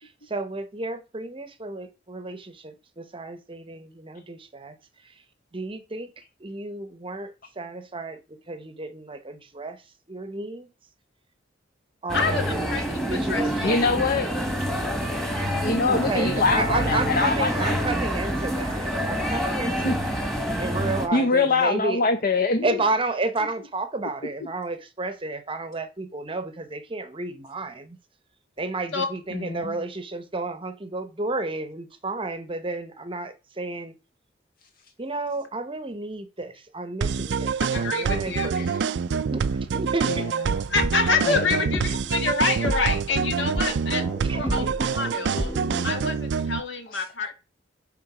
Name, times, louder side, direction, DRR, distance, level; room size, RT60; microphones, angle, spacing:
voice 1, 0.0-4.8 5.5-6.1 6.4-8.2 8.5-9.8 10.1-10.7 12.0-12.6 13.0-13.8 15.9-20.2 20.6-22.0 22.6-28.0 28.6-33.9 35.0-38.6 39.3-40.3 44.2-44.9, right 2 dB, 30° right, 0.8 m, -32 dB
voice 2, 12.1-13.8 28.9-29.1 37.7-38.6 40.7-44.0 44.3-44.7 45.0-45.5 45.8-47.3, left 4 dB, 70° left, 1.8 m, -27 dB
sound 1, 12.1-21.1, equal, ahead, 1.5 m, -27 dB
voice 3, 13.6-14.3 15.6-17.9 19.0-19.1 19.8-19.9 20.5-20.6 21.1-22.8 29.3-29.7 38.6-38.8 40.1-40.2 41.2-41.5 46.9-47.0, left 3 dB, 50° left, 0.7 m, -24 dB
sound 2, 37.0-46.6, right 6 dB, 65° right, 0.4 m, -26 dB
sound 3, 40.7-45.8, equal, 20° left, 1.1 m, -33 dB
8.8 x 3.7 x 4.9 m
head